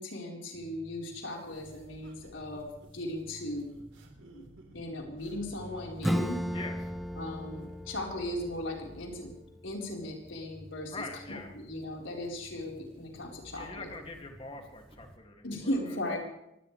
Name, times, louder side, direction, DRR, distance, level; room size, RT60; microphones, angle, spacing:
voice 1, 0.0-3.7 4.3-4.4 4.7-6.4 7.2-9.3 9.6-13.9 15.4-16.2, left 1 dB, 85° left, -1 dB, 4.5 m, -37 dB
sound 1, 0.5-15.2, equal, 30° right, 2.7 m, -53 dB
sound 2, 1.5-6.8, right 1 dB, 85° right, 3.8 m, -56 dB
Acoustic guitar / Strum, 6.0-11.2, equal, ahead, 1.1 m, -37 dB
voice 2, 10.9-11.5 13.5-15.6, left 2 dB, 30° left, 3 dB, 2.5 m, -43 dB
24.0 x 17.5 x 3.4 m, 0.83 s
head